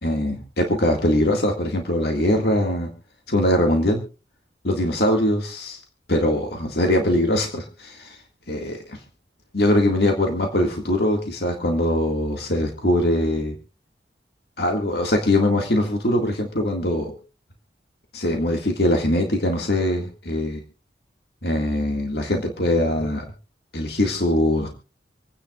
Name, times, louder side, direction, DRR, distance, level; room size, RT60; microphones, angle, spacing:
voice 1, 0.0-2.9 3.3-4.0 4.6-5.8 6.1-8.2 8.5-9.0 9.5-13.6 14.6-17.2 18.1-20.6 21.4-23.3 23.7-24.7, left 1 dB, 65° left, 2 dB, 2.0 m, -22 dB
27.5 x 9.6 x 2.4 m, 0.35 s
head